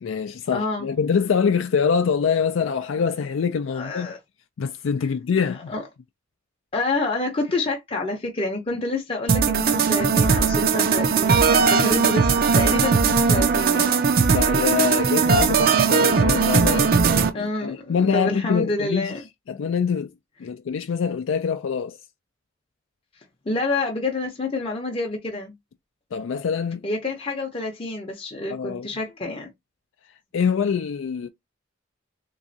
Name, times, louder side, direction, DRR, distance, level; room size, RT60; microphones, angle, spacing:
voice 1, 0.0-4.1 4.6-5.7 14.3-17.0 17.3-19.1 19.5-20.1 20.4-22.0 26.1-26.9 28.5-28.9 30.3-31.3, left 6 dB, 75° left, 0.4 m, -24 dB
voice 2, 0.5-0.9 3.7-4.2 5.7-5.8 6.7-14.0 14.3-14.5 17.3-19.2 23.5-25.5 26.8-29.5, left 2 dB, 30° left, 0.6 m, -28 dB
sound 1, 9.3-17.3, right 5 dB, 50° right, 0.5 m, -19 dB
3.5 x 3.0 x 2.7 m
head